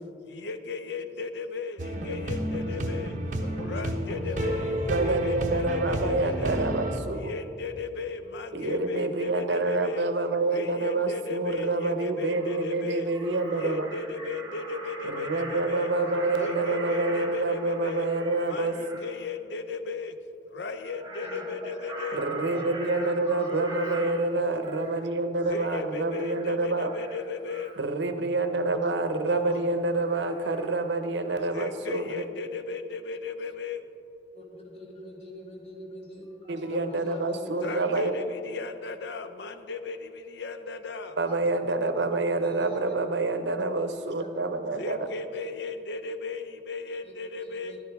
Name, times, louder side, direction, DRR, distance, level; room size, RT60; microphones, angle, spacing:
voice 1, 0.2-3.2 3.6-6.6 7.2-10.1 10.5-13.1 13.6-15.9 16.4-18.1 18.5-20.2 20.4-22.2 25.5-27.7 31.5-33.8 37.6-41.2 44.8-47.8, left 4 dB, 75° left, 10 dB, 0.5 m, -36 dB
sound 1, 1.8-7.0, right 1 dB, 45° right, 0.9 m, -31 dB
voice 2, 2.4-2.8 3.4-4.4 6.2-6.4 9.5-9.6 16.4-16.5 16.8-17.0 17.2-17.3 21.2-21.5 22.5-24.0 24.5-24.6 29.2-29.6 34.3-38.3 41.2-41.5 42.4-42.9 44.2-44.3 47.0-47.1 47.4-47.8, left 2 dB, 35° left, 0 dB, 1.4 m, -42 dB
voice 3, 4.9-7.3 8.5-13.9 15.0-18.7 22.1-26.9 27.8-32.2 36.5-38.1 41.2-45.1, right 2 dB, 85° right, 8 dB, 0.7 m, -27 dB
Crow, 11.7-11.8 12.1-12.7 13.1-19.1 20.7-25.0 25.4-25.7 26.1-26.5 26.8-27.8 28.6-28.9 29.9-31.0 31.2-31.5, right 2 dB, 25° right, 1.1 m, -42 dB
11.0 x 10.5 x 3.5 m, 2.8 s
head